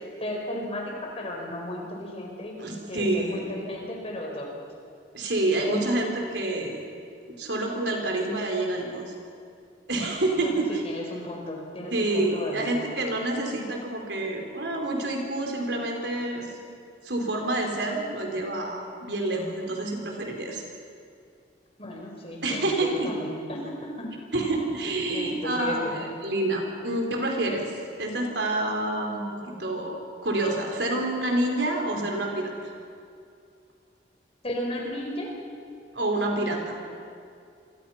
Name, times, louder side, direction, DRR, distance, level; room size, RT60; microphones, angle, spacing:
voice 1, 0.2-2.5 2.9-4.5 10.4-12.8 21.8-24.1 25.1-26.0 34.4-35.3, left 1 dB, 35° left, 0 dB, 4.8 m, -34 dB
voice 2, 2.6-3.4 5.1-6.8 7.4-9.1 9.9-10.8 11.9-16.5 17.0-20.6 22.4-23.1 24.3-27.7 28.0-32.5 35.9-36.8, right 2 dB, 70° right, 2 dB, 4.4 m, -28 dB
27.5 x 23.5 x 5.9 m, 2.4 s
head